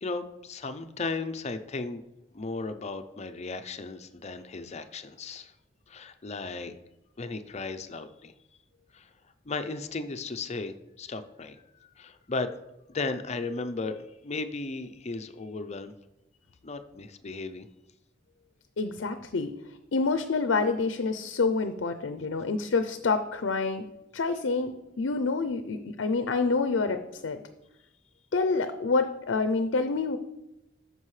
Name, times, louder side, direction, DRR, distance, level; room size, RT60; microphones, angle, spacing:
voice 1, 0.0-2.0 2.3-5.5 5.9-6.7 7.2-8.3 8.9-9.1 9.4-12.5 12.9-15.9 16.6-17.7, left 3 dB, 35° left, 9 dB, 0.5 m, -35 dB
voice 2, 18.8-19.5 19.9-23.8 24.1-27.4 28.3-30.2, left 4 dB, 80° left, 8 dB, 0.5 m, -27 dB
13.0 x 5.4 x 3.2 m, 0.92 s
head